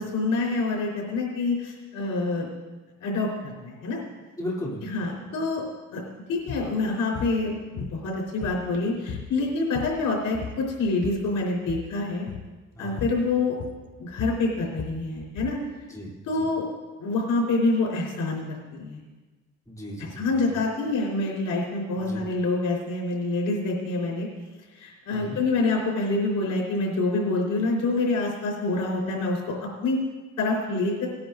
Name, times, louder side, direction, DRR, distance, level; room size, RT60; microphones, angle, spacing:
voice 1, 0.0-2.5 3.0-3.3 3.6-4.0 4.8-5.6 5.9-6.0 6.3-12.3 12.8-13.6 14.0-15.6 16.3-16.6 17.0-19.0 20.0-24.3 24.7-29.6 29.8-30.0 30.4-31.1, left 3 dB, 80° left, -2 dB, 4.1 m, -26 dB
voice 2, 4.4-4.8 12.8-13.1 15.9-16.4 19.7-20.6 22.0-22.2 25.1-25.4, left 1 dB, 10° left, -5 dB, 3.1 m, -36 dB
sound 1, 6.4-6.7 7.1-7.4 7.8-8.8 9.1-9.3 9.6-10.1 10.3-11.3 11.6-11.9 12.3-12.5 13.0-13.2 13.6-15.6, left 7 dB, 50° left, 0.7 m, -36 dB
19.0 x 10.5 x 2.6 m, 1.2 s
cardioid pair, 90°, 30 cm